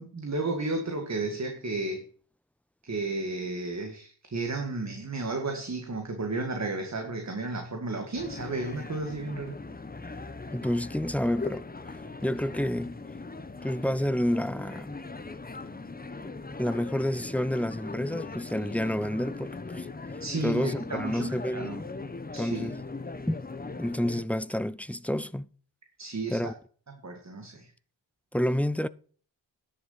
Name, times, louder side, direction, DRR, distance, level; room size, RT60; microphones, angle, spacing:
voice 1, 0.0-2.0 2.8-9.6 20.2-21.8 22.3-22.7 26.0-26.5 27.0-27.7, right 2 dB, 35° right, 2.1 m, -33 dB
sound 1, 8.1-24.2, left 3 dB, 20° left, 1.0 m, -40 dB
voice 2, 10.5-13.0 13.6-15.0 16.2-19.9 20.4-21.9 22.4-22.8 23.3-23.4 23.8-25.5 26.3-26.5 28.3-28.9, left 1 dB, 5° left, 0.4 m, -29 dB
10.5 x 6.8 x 5.8 m
wide cardioid pair, 90°, 45 cm